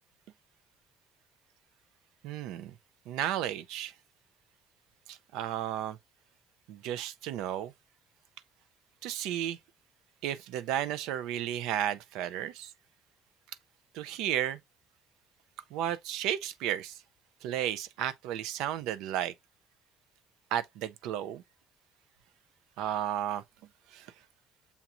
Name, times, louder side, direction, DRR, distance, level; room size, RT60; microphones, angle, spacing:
voice 1, 2.2-2.8 3.1-3.9 5.1-6.0 6.7-7.7 9.0-9.6 10.2-12.7 13.9-14.6 15.7-17.0 17.4-19.3 20.5-21.4 22.8-23.4 23.9-24.1, right 11 dB, 80° right, 0.4 m, -33 dB
7.0 x 2.9 x 2.4 m
supercardioid pair, 75°, 0 cm